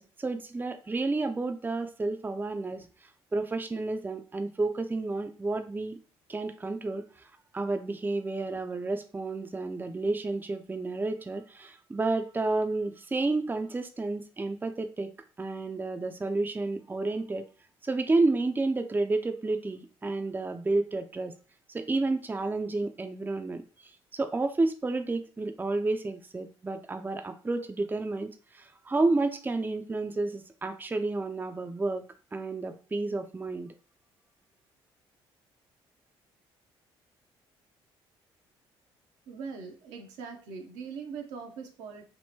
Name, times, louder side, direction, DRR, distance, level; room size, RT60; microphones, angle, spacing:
voice 1, 0.0-2.9 3.3-6.0 6.3-7.1 7.5-17.5 17.8-21.3 21.7-32.0 32.3-33.7, right 3 dB, 15° right, 7 dB, 0.4 m, -31 dB
voice 2, 39.3-42.0, right 5 dB, 75° right, 3 dB, 0.7 m, -41 dB
3.6 x 2.1 x 2.8 m, 0.36 s
hypercardioid pair, 50°, 12 cm